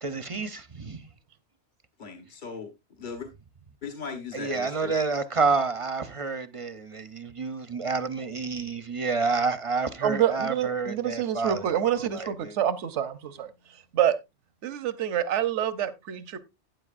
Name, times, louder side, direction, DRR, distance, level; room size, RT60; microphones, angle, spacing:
voice 1, 0.0-1.1 4.3-12.5, right 4 dB, 35° right, 0.6 m, -29 dB
voice 2, 2.0-3.3 3.8-4.9, left 5 dB, 45° left, 1.3 m, -38 dB
voice 3, 10.0-13.5 13.9-14.2 14.6-16.4, right 10 dB, 85° right, 1.1 m, -27 dB
12.5 x 9.0 x 2.5 m
omnidirectional pair, 1.2 m